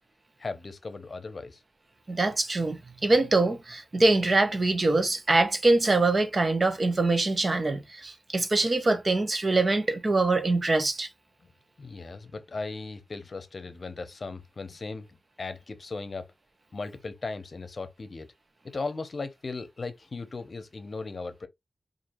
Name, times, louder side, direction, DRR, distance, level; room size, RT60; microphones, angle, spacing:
voice 1, 0.4-1.6 11.8-16.3 16.7-18.3 18.6-21.5, left 3 dB, 55° left, 0.7 m, -37 dB
voice 2, 2.1-11.1, right 2 dB, 45° right, 0.9 m, -24 dB
4.5 x 2.6 x 2.6 m
wide cardioid pair, 75°, 0 cm